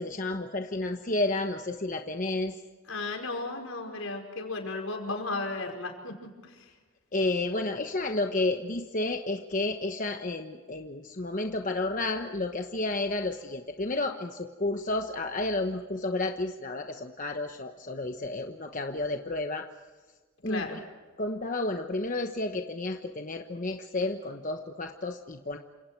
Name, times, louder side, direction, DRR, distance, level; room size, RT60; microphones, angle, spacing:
voice 1, 0.0-2.5 7.1-19.6 20.4-20.7 21.2-25.6, left 2 dB, 40° left, 4 dB, 1.1 m, -31 dB
voice 2, 2.9-6.1 6.4-6.7 20.5-20.8, left 3 dB, 80° left, 3 dB, 5.2 m, -34 dB
29.5 x 27.0 x 4.7 m, 1.3 s
head